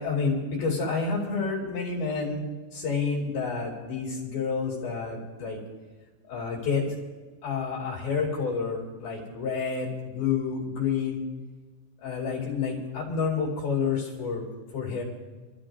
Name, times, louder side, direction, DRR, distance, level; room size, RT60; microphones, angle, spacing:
voice 1, 0.0-5.6 6.3-6.9 7.4-11.2 12.0-14.4 14.7-15.0, left 5 dB, 55° left, -3 dB, 4.0 m, -29 dB
26.5 x 14.0 x 2.6 m, 1.3 s
omnidirectional pair, 5.5 m